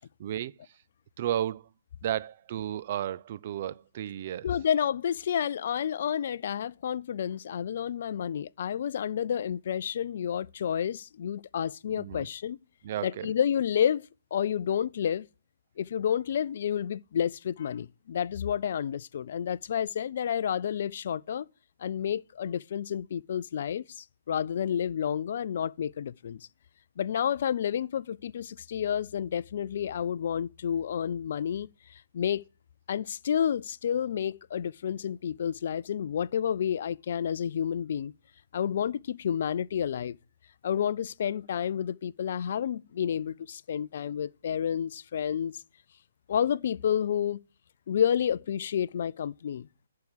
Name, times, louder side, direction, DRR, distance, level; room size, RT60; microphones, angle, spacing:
voice 1, 0.2-0.5 1.2-1.6 2.0-4.5 12.0-12.3 12.8-13.3, right 11 dB, 45° right, 0.4 m, -33 dB
voice 2, 4.4-12.6 13.0-15.3 15.8-21.5 21.8-26.5 27.0-32.4 32.9-38.1 38.5-40.2 40.6-45.5 46.3-47.4 47.9-49.9, left 8 dB, 55° left, 0.4 m, -30 dB
11.0 x 4.8 x 6.6 m
hypercardioid pair, 145°, 0 cm